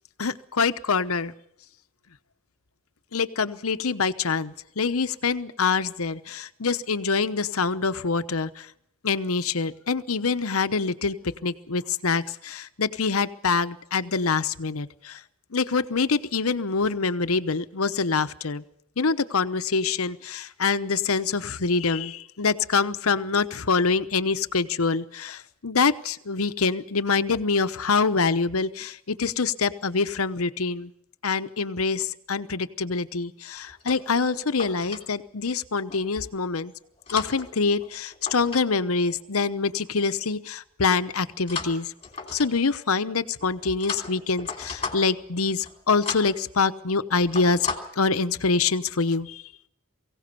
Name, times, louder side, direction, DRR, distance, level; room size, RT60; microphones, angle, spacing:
voice 1, 0.2-1.3 3.1-8.7 9.0-15.2 15.5-18.6 19.0-30.9 31.2-36.7 37.1-41.9 42.3-47.7 48.0-49.4, left 4 dB, 85° left, 12 dB, 1.0 m, -25 dB
sound 1, 33.6-35.0 35.9-36.3 36.8-38.6 38.9-39.2 41.5-42.8 43.4-45.3 45.6-45.8 46.0-46.4 46.8-46.9 47.2-47.8, left 5 dB, 25° left, 3.1 m, -36 dB
23.0 x 16.5 x 6.9 m, 0.72 s
head